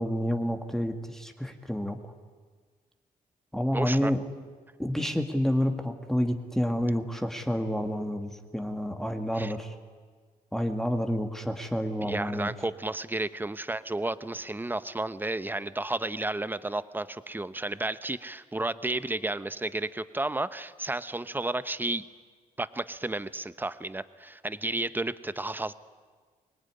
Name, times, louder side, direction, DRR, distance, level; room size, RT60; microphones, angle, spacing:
voice 1, 0.0-2.0 3.5-4.2 4.8-9.7 10.5-12.5, equal, 5° left, 5 dB, 2.1 m, -29 dB
voice 2, 3.7-4.1 9.3-9.5 12.0-22.1 22.6-25.7, right 2 dB, 15° right, 14 dB, 0.9 m, -32 dB
24.5 x 20.0 x 9.8 m, 1.5 s
cardioid pair, 90°, 16 cm